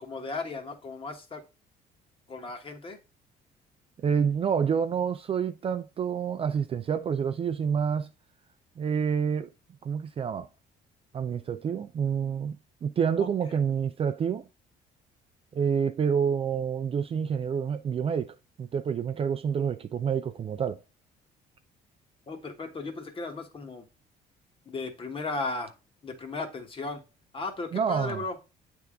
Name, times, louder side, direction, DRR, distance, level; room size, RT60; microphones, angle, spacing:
voice 1, 0.0-1.4 2.3-3.0 13.2-13.6 22.3-23.8 24.6-25.7 26.0-27.0 27.3-28.4, left 3 dB, 30° left, 1.3 m, -36 dB
voice 2, 4.0-8.1 8.8-9.5 9.8-10.5 11.1-14.5 15.5-20.8 27.7-28.2, right 7 dB, 35° right, 0.4 m, -28 dB
8.0 x 3.5 x 3.6 m
cardioid pair, 110°, 17 cm